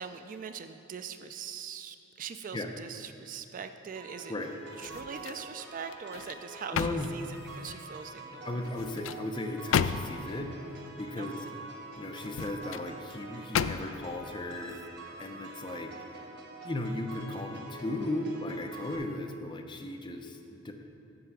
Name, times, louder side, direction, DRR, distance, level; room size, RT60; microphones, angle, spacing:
voice 1, 0.0-4.3 4.8-7.3 7.5-8.6 11.2-11.5, right 6 dB, 45° right, 9 dB, 0.3 m, -42 dB
sound 1, 4.0-19.0, right 3 dB, 60° right, 1.2 m, -46 dB
sound 2, 4.7-5.5 5.9-7.9 8.6-10.4 12.1-12.9 13.5-14.1 14.6-14.8, left 7 dB, 80° left, 0.3 m, -34 dB
voice 2, 6.7-7.1 8.4-10.6 11.0-11.5 12.0-15.9 16.6-20.7, left 1 dB, 25° left, 4 dB, 0.6 m, -36 dB
7.8 x 6.7 x 6.1 m, 2.9 s
head